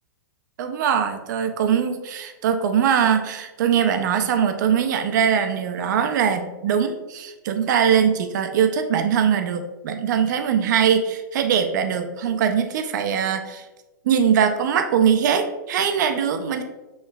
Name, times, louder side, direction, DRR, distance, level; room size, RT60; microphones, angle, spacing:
voice 1, 0.6-13.6 14.0-16.6, right 7 dB, 60° right, 7 dB, 0.5 m, -21 dB
7.1 x 3.0 x 2.3 m, 1.1 s
hypercardioid pair, 145°, 11 cm